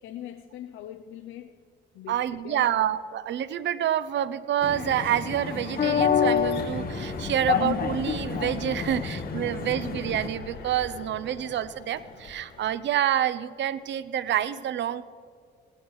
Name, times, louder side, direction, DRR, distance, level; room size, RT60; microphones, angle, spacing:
voice 1, 0.0-1.6 1.9-2.8 8.8-9.0 9.3-9.6, left 11 dB, 90° left, 7 dB, 0.6 m, -42 dB
voice 2, 2.1-15.0, right 10 dB, 65° right, 16 dB, 0.6 m, -27 dB
sound 1, 4.6-10.3, left 7 dB, 45° left, 1.0 m, -28 dB
sound 2, 6.3-12.7, left 3 dB, 65° left, 3.8 m, -42 dB
18.5 x 16.5 x 3.2 m, 2.3 s
cardioid pair, 90°, 20 cm